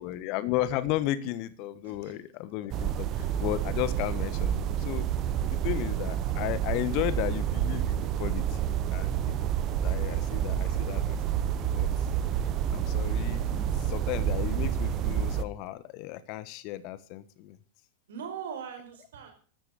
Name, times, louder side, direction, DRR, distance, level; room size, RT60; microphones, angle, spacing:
voice 1, 0.0-5.1 5.4-9.5 9.8-11.2 11.6-11.9 12.7-17.6, left 15 dB, 45° left, 16 dB, 1.4 m, -34 dB
voice 2, 1.8-2.1 5.3-5.7 9.5-9.8 18.1-19.3, right 7 dB, 60° right, 5 dB, 5.1 m, -41 dB
sound 1, 2.7-15.4, right 9 dB, 35° right, 1.3 m, -29 dB
13.5 x 13.0 x 6.7 m, 0.41 s
figure-of-eight pair, 90°, 0 cm